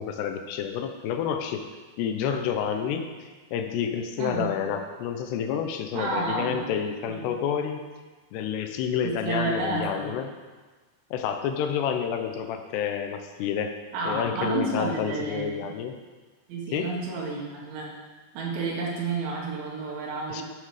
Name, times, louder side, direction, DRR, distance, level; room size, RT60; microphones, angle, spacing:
voice 1, 0.0-1.6 2.0-3.1 3.5-7.8 8.3-10.3 11.1-13.8 14.1-16.0 16.7-16.9 20.3-20.4, left 8 dB, 75° left, 6 dB, 2.7 m, -29 dB
voice 2, 5.9-6.6 7.1-7.3 9.0-10.1 13.9-15.7 16.5-17.9 18.3-20.4, right 3 dB, 90° right, -4 dB, 4.5 m, -30 dB
13.0 x 7.8 x 4.9 m, 1.3 s
omnidirectional pair, 5.2 m